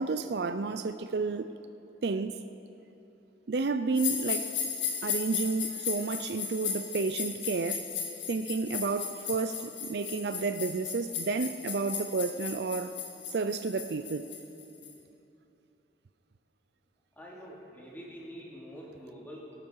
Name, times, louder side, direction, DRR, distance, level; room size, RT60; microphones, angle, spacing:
voice 1, 0.0-1.5 2.0-2.4 3.5-4.5 5.0-7.8 8.3-13.0 13.3-14.3, right 4 dB, 60° right, 0.5 m, -31 dB
sound 1, 3.9-14.9, left 7 dB, 85° left, 2.0 m, -36 dB
voice 2, 17.1-19.6, equal, 10° left, 2.9 m, -46 dB
21.5 x 13.0 x 4.7 m
head